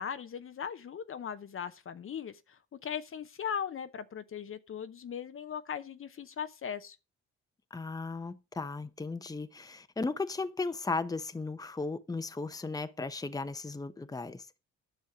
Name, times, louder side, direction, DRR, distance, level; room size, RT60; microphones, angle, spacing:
voice 1, 0.0-7.0, left 8 dB, 45° left, 0.8 m, -39 dB
voice 2, 7.7-14.6, left 3 dB, 10° left, 0.8 m, -36 dB
9.8 x 6.3 x 5.1 m
cardioid pair, 90°, 30 cm